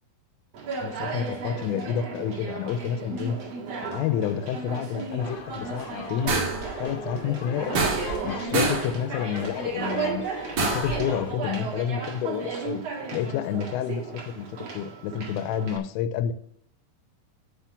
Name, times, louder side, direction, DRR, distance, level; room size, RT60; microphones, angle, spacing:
Conversation, 0.5-15.8, right 4 dB, 65° right, 1.6 m, -35 dB
voice 1, 0.8-3.4 3.8-6.4 6.8-10.2 10.6-12.8 13.1-14.5 14.7-16.3, left 9 dB, 85° left, 10 dB, 3.2 m, -29 dB
sound 1, 5.2-11.3, left 6 dB, 60° left, 2.2 m, -40 dB
sound 2, 6.3-6.7 7.7-8.3 8.5-8.9 10.6-11.0, right 3 dB, 90° right, 1.2 m, -26 dB
8.3 x 6.3 x 5.8 m, 0.71 s
omnidirectional pair, 5.8 m